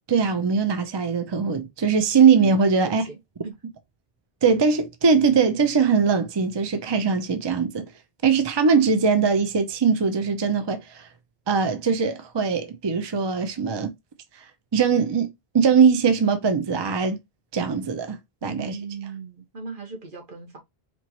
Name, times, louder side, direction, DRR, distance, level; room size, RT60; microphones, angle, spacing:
voice 1, 0.1-3.0 4.4-7.8 8.2-11.1 11.5-13.9 14.7-15.3 15.5-17.2 17.5-18.8, right 5 dB, 35° right, 0.4 m, -21 dB
voice 2, 2.7-3.2 3.4-3.5 18.4-20.6, right 5 dB, 55° right, 1.3 m, -37 dB
4.4 x 2.8 x 2.9 m
omnidirectional pair, 1.0 m